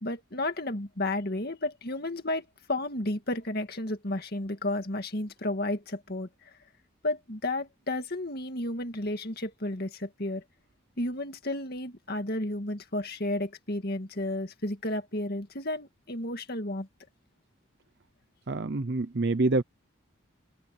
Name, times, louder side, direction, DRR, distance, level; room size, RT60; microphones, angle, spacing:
voice 1, 0.0-6.5 7.0-10.4 11.0-16.9, left 1 dB, 50° left, 2.1 m, -32 dB
voice 2, 18.5-19.6, right 2 dB, 55° right, 0.7 m, -26 dB
head